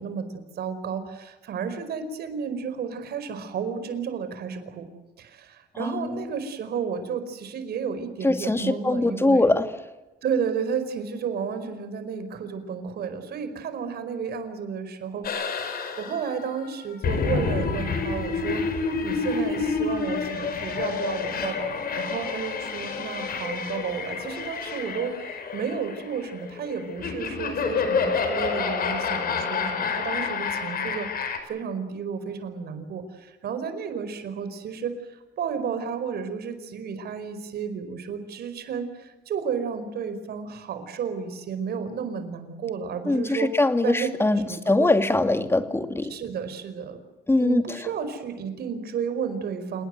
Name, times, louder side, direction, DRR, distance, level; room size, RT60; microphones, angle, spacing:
voice 1, 0.0-4.9 5.2-9.5 10.2-15.3 15.6-31.1 31.4-43.5 43.8-44.1 44.5-45.0 46.1-47.0 47.4-49.8, right 6 dB, 70° right, 10 dB, 4.9 m, -32 dB
voice 2, 5.8-6.2 8.2-9.7 43.1-44.4 44.7-46.1 47.3-47.6, left 2 dB, 15° left, 8 dB, 2.5 m, -22 dB
sound 1, 15.2-31.4, left 5 dB, 60° left, 5.4 m, -29 dB
29.0 x 19.0 x 8.0 m, 1.1 s
cardioid pair, 110°, 17 cm